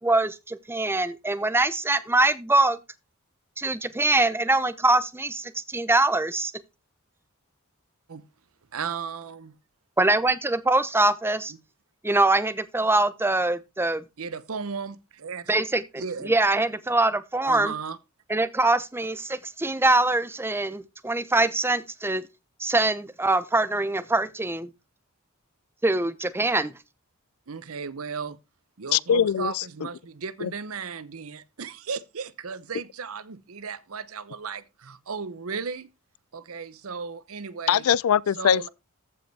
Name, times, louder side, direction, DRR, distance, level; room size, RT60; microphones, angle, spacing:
voice 1, 0.0-2.8 3.6-6.5 10.0-11.5 12.0-14.0 15.5-17.7 18.3-22.2 22.6-24.7 25.8-26.7, right 2 dB, 10° right, 0.7 m, -23 dB
voice 2, 8.7-9.6 14.2-15.5 16.0-16.4 17.5-18.0 27.5-28.4 28.8-35.9 36.3-37.9 38.3-38.7, right 5 dB, 75° right, 0.8 m, -35 dB
voice 3, 28.9-29.6 30.4-30.5 37.7-38.7, left 9 dB, 80° left, 0.4 m, -22 dB
14.5 x 5.2 x 3.4 m
head